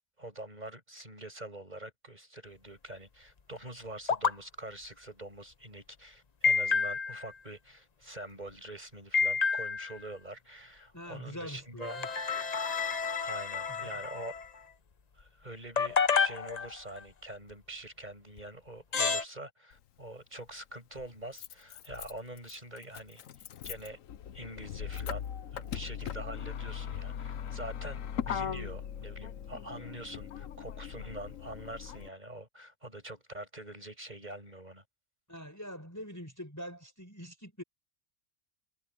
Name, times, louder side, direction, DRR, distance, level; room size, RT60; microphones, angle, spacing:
voice 1, 0.2-12.0 13.2-14.3 15.2-24.0 24.3-34.8, right 1 dB, 30° right, 7.5 m, -45 dB
sound 1, 4.1-4.3 6.4-7.3 9.1-10.0 11.8-14.5 15.8-17.0 18.4-18.5 18.9-19.2, left 5 dB, 35° left, 0.8 m, -29 dB
voice 2, 10.9-12.1 13.7-14.0 35.3-37.6, equal, 10° left, 5.8 m, -44 dB
Motor vehicle (road), 19.7-19.8 21.0-32.1, left 8 dB, 75° left, 1.2 m, -40 dB
omnidirectional pair, 1.4 m